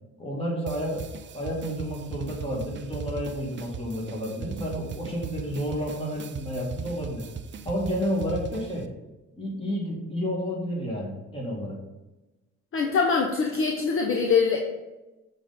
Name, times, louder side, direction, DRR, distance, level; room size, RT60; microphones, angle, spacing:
voice 1, 0.2-1.1 1.3-7.3 7.6-8.8 9.4-11.8, equal, 20° left, -3 dB, 2.2 m, -30 dB
sound 1, 0.7-8.8, right 6 dB, 40° right, 0.5 m, -39 dB
voice 2, 12.7-14.6, left 5 dB, 45° left, 1 dB, 0.8 m, -23 dB
6.6 x 4.1 x 4.2 m, 1.1 s
cardioid pair, 90°, 30 cm